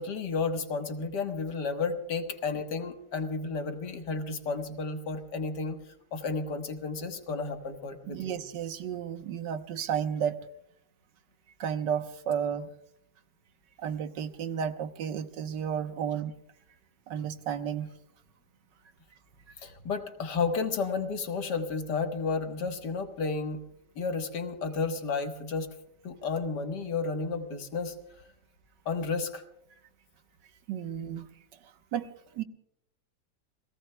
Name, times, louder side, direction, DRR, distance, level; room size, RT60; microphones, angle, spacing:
voice 1, 0.0-5.8 6.1-8.4 19.6-23.6 24.0-25.7 26.0-27.9 28.9-29.4, left 4 dB, 75° left, 6 dB, 2.0 m, -32 dB
voice 2, 8.1-10.4 11.6-12.7 13.8-16.3 17.1-17.9 30.7-31.3 31.9-32.1 32.3-32.4, right 8 dB, 90° right, 9 dB, 1.6 m, -32 dB
30.0 x 18.5 x 2.2 m, 0.77 s
omnidirectional pair, 1.8 m